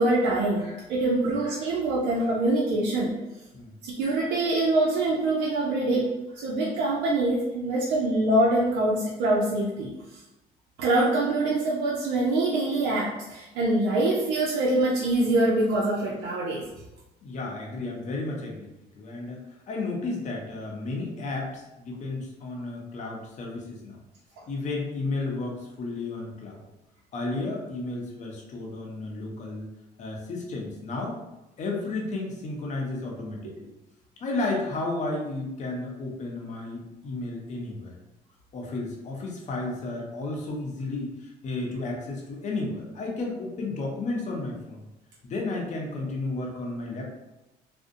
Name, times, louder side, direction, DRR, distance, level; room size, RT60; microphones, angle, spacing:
voice 1, 0.0-3.1 3.8-9.9 10.8-16.6, right 2 dB, 85° right, -5 dB, 0.5 m, -24 dB
voice 2, 17.2-24.0 24.5-26.6 27.1-29.7 30.0-31.2 31.6-33.7 34.2-38.0 38.5-44.8 45.2-47.0, left 2 dB, 45° left, -1 dB, 0.6 m, -33 dB
2.5 x 2.0 x 2.6 m, 0.98 s
cardioid pair, 110°, 17 cm